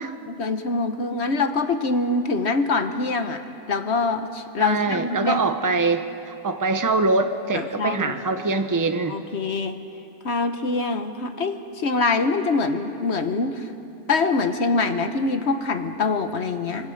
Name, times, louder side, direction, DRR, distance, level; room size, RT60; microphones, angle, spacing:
voice 1, 0.3-5.4 7.5-8.2 9.1-9.8 10.2-13.7 14.1-16.9, left 3 dB, 45° left, 8 dB, 1.1 m, -24 dB
voice 2, 4.6-9.2, right 3 dB, 20° right, 8 dB, 0.5 m, -23 dB
25.0 x 24.0 x 6.5 m, 2.8 s
omnidirectional pair, 1.8 m